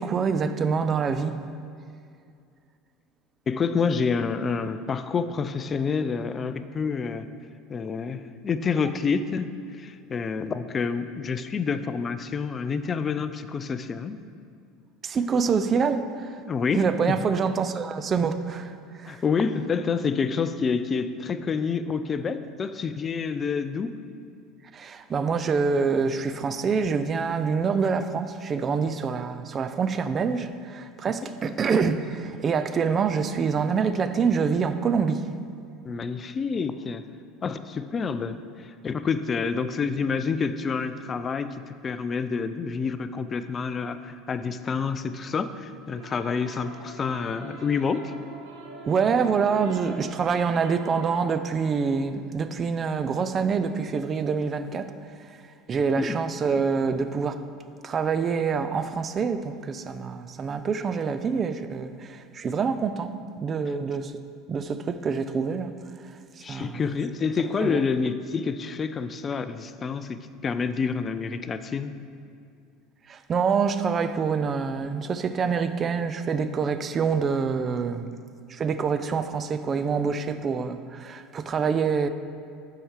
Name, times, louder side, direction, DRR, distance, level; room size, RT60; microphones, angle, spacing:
voice 1, 0.0-1.3 15.0-16.4 16.7-18.7 19.0-19.2 24.7-35.3 48.8-54.9 55.7-57.4 57.8-64.2 64.5-65.7 66.5-66.8 67.6-67.8 73.1-78.1 78.5-82.1, right 5 dB, 35° right, 0.4 m, -26 dB
voice 2, 3.5-7.3 7.7-9.5 9.8-14.2 16.5-17.2 19.1-23.9 31.2-31.6 35.8-37.0 37.4-48.1 56.0-56.2 63.7-63.8 66.4-71.9, left 5 dB, 30° left, 0.4 m, -28 dB
sound 1, 45.9-51.4, right 3 dB, 80° right, 0.9 m, -44 dB
6.1 x 4.7 x 5.0 m
hypercardioid pair, 90°, 0 cm